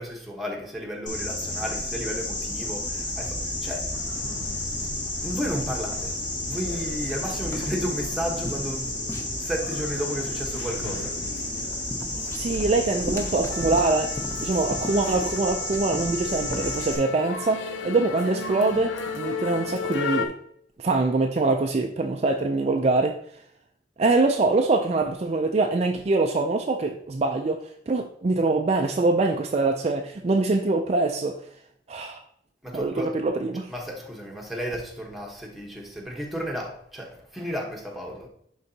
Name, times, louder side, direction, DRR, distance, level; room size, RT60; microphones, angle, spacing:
voice 1, 0.0-4.0 4.3-4.4 4.7-4.9 5.2-6.2 6.4-11.1 32.6-33.1 33.7-38.3, equal, ahead, -1 dB, 1.0 m, -33 dB
sound 1, 1.1-17.0, left 2 dB, 45° left, 2.0 m, -31 dB
sound 2, 3.9-20.3, left 5 dB, 85° left, 0.6 m, -37 dB
sound 3, 7.4-9.8 11.5-16.8, equal, 15° left, 0.6 m, -37 dB
voice 2, 12.3-20.3 20.8-23.2 24.0-31.4 31.9-32.2 32.7-33.7, right 3 dB, 35° right, 4 dB, 0.4 m, -24 dB
11.0 x 3.9 x 2.7 m, 0.69 s
head